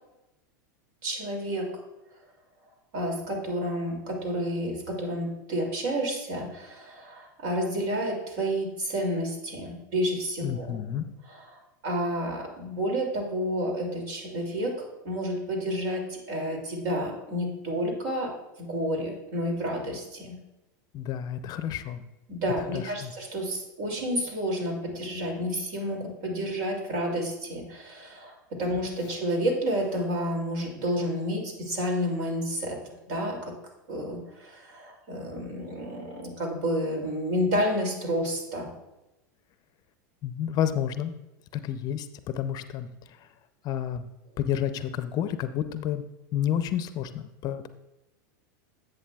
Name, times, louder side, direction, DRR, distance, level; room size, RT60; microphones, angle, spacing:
voice 1, 1.0-1.7 2.9-10.8 11.3-18.3 18.6-20.4 22.3-32.8 33.1-33.5 33.9-38.7, equal, 60° right, 2 dB, 2.6 m, -30 dB
voice 2, 10.4-11.0 20.9-22.0 22.7-23.1 40.2-41.2 41.5-43.2 43.6-44.1 44.4-46.1 46.3-47.7, left 10 dB, 40° left, 11 dB, 0.5 m, -30 dB
11.0 x 7.9 x 2.3 m, 0.98 s
hypercardioid pair, 105°, 10 cm